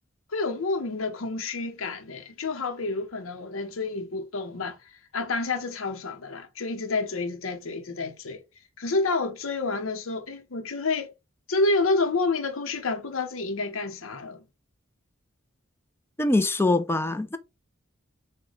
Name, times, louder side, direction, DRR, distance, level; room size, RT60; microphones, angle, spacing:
voice 1, 0.3-8.4 8.8-11.1 11.5-14.4, left 3 dB, 85° left, 0.7 m, -29 dB
voice 2, 16.2-17.4, left 2 dB, 10° left, 0.4 m, -23 dB
6.3 x 2.2 x 3.1 m
head